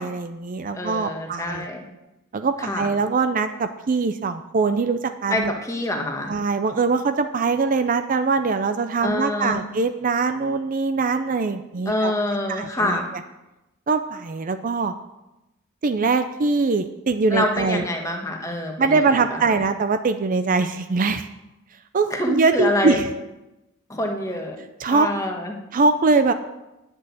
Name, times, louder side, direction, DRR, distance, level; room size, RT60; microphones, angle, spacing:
voice 1, 0.0-1.7 2.3-5.5 6.3-12.1 12.5-13.0 13.9-14.9 15.8-17.9 18.8-21.3 21.9-23.0 24.8-25.1 25.7-26.3, right 4 dB, 40° right, 9 dB, 0.5 m, -22 dB
voice 2, 0.7-1.8 2.6-2.9 5.3-6.3 9.0-9.6 11.8-13.1 17.3-19.6 22.1-23.0 23.9-24.6 24.9-25.5, left 1 dB, 15° left, 2 dB, 1.5 m, -26 dB
10.0 x 6.2 x 8.5 m, 0.97 s
head